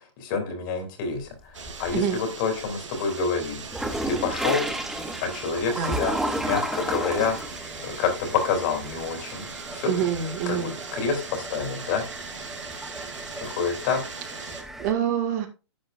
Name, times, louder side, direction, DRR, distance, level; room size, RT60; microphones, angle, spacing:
voice 1, 0.2-3.6 4.1-4.6 5.2-6.1 6.4-7.4 7.8-9.5 9.7-9.9 10.5-12.0 13.4-14.0, left 5 dB, 45° left, 4 dB, 3.5 m, -27 dB
sound 1, 1.2-2.2 2.6-14.9, right 1 dB, ahead, 1.0 m, -34 dB
sound 2, 1.5-14.6, right 5 dB, 80° right, 2.9 m, -40 dB
voice 2, 9.9-10.7 14.8-15.5, right 8 dB, 40° right, 4 dB, 2.1 m, -26 dB
10.5 x 8.1 x 2.6 m, 0.30 s
hypercardioid pair, 135°, 15 cm